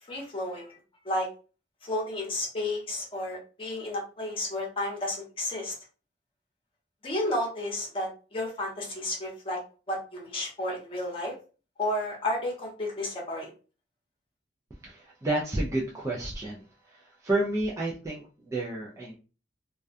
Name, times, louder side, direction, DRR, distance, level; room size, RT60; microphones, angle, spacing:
voice 1, 0.1-0.8 1.0-1.3 1.8-5.8 7.0-9.6 9.9-11.3 11.8-13.5, left 1 dB, 30° left, -2 dB, 0.8 m, -32 dB
voice 2, 14.8-16.6 17.2-19.2, right 2 dB, 15° right, -4 dB, 0.3 m, -30 dB
2.3 x 2.2 x 2.5 m, 0.35 s
head